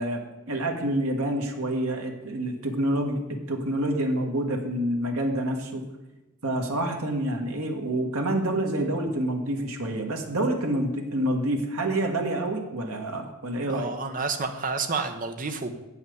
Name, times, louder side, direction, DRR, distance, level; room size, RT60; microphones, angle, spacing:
voice 1, 0.0-5.8 6.4-13.9, right 1 dB, 80° right, 2 dB, 1.4 m, -27 dB
voice 2, 13.7-15.7, right 4 dB, 40° right, 6 dB, 0.9 m, -30 dB
8.1 x 5.7 x 7.8 m, 1.0 s
head